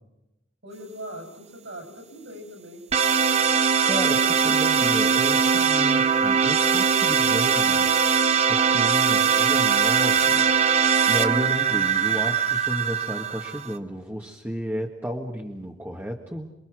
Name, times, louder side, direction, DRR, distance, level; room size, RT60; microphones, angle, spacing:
voice 1, 0.6-2.8, equal, 70° right, 3 dB, 7.9 m, -40 dB
sound 1, 2.9-13.8, right 6 dB, 35° right, 1.2 m, -21 dB
voice 2, 3.4-10.5 10.7-16.5, equal, 10° right, 0 dB, 1.6 m, -33 dB
28.5 x 22.0 x 6.3 m, 0.91 s
head